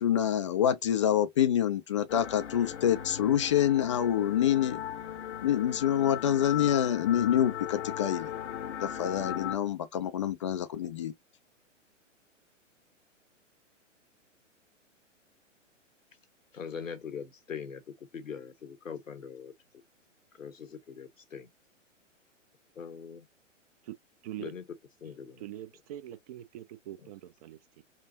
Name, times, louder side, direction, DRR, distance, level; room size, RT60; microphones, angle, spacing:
voice 1, 0.0-4.8 5.4-8.3 8.8-11.1, left 10 dB, 25° left, 0.3 m, -27 dB
sound 1, 2.1-9.6, left 10 dB, 60° left, 0.8 m, -38 dB
voice 2, 16.5-19.8 20.3-21.5 22.8-23.3 24.4-25.5 27.0-27.1, left 6 dB, 85° left, 1.0 m, -42 dB
voice 3, 25.4-27.8, right 12 dB, 30° right, 0.5 m, -43 dB
5.6 x 2.0 x 2.7 m
figure-of-eight pair, 115°, 38 cm